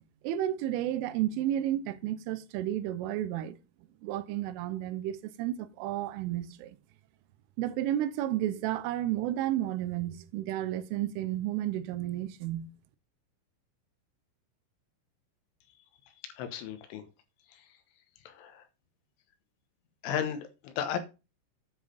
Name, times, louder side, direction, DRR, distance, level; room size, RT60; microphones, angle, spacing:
voice 1, 0.2-3.6 4.0-6.8 7.6-12.7, right 12 dB, 85° right, 3.3 m, -32 dB
voice 2, 16.2-17.0 17.5-17.7 18.3-18.7 20.0-21.0, left 9 dB, 80° left, 3.5 m, -35 dB
9.8 x 5.5 x 5.2 m
omnidirectional pair, 5.6 m